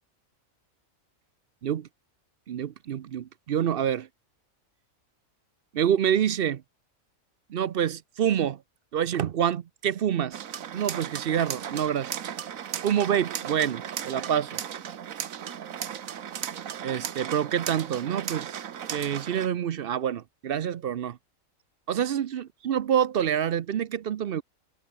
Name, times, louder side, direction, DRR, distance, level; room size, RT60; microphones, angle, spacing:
voice 1, 2.5-4.1 5.7-6.6 7.5-8.6 8.9-10.4 10.7-12.1 12.8-14.6 16.8-18.6 18.9-21.2 21.9-24.4, right 9 dB, 55° right, 0.7 m, -27 dB
sound 1, 10.3-19.5, right 9 dB, 80° right, 1.4 m, -36 dB
omnidirectional pair, 1.4 m